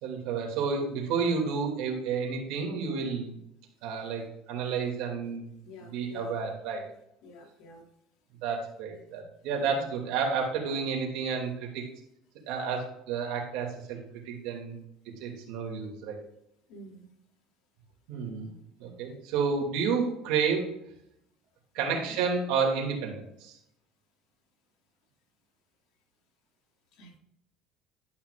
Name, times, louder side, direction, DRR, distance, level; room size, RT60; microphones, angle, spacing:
voice 1, 0.0-3.3 3.8-5.5 5.8-6.8 8.4-11.8 12.5-14.0 14.2-14.8 15.2-16.2 18.1-18.5 18.8-20.7 21.7-23.5, right 5 dB, 75° right, 1 dB, 2.6 m, -30 dB
voice 2, 5.6-6.4 7.2-7.9 9.6-9.9 16.7-17.1 21.9-22.2 26.9-27.2, left 1 dB, 70° left, 1 dB, 2.3 m, -49 dB
12.0 x 5.7 x 2.5 m, 0.76 s
cardioid pair, 125°, 0 cm